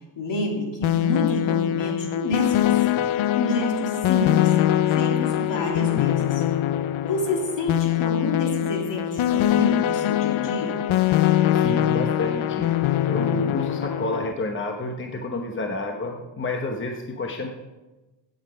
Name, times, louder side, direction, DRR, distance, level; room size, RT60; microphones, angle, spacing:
voice 1, 0.2-3.0 3.4-4.5 4.9-6.4 7.0-10.8, left 2 dB, 65° left, 0 dB, 3.1 m, -28 dB
sound 1, 0.8-14.3, left 12 dB, 85° left, 0.7 m, -23 dB
voice 2, 11.5-12.7 13.1-17.5, left 2 dB, 25° left, 3 dB, 1.0 m, -29 dB
16.0 x 8.1 x 5.1 m, 1.1 s
wide cardioid pair, 150°, 46 cm